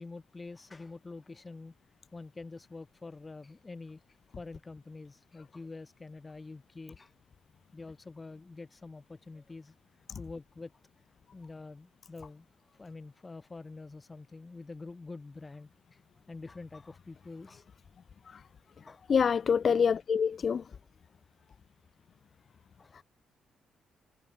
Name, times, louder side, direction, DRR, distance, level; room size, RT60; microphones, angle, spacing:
voice 1, 0.0-1.7 2.1-4.0 4.4-7.1 7.7-9.7 10.2-10.7 11.3-16.0 16.3-17.6 18.9-19.0 20.6-20.7 22.8-23.0, left 3 dB, 25° left, 5.3 m, -46 dB
voice 2, 19.1-20.6, left 6 dB, 45° left, 0.8 m, -25 dB
cardioid pair, 90°, 0 cm